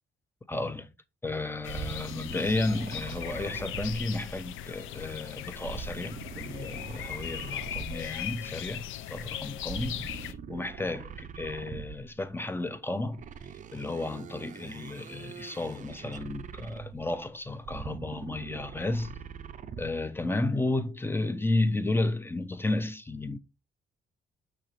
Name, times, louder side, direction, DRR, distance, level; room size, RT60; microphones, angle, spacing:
voice 1, 0.5-0.9 1.2-13.2 13.7-19.2 19.8-23.4, left 2 dB, 10° left, 0.5 m, -32 dB
sound 1, 1.6-10.3, left 10 dB, 80° left, 0.4 m, -39 dB
sound 2, 1.6-4.7 5.6-8.3 9.6-12.2 13.1-17.1 17.6-20.1, right 7 dB, 40° right, 0.5 m, -43 dB
6.0 x 2.9 x 3.0 m
cardioid pair, 90°, 20 cm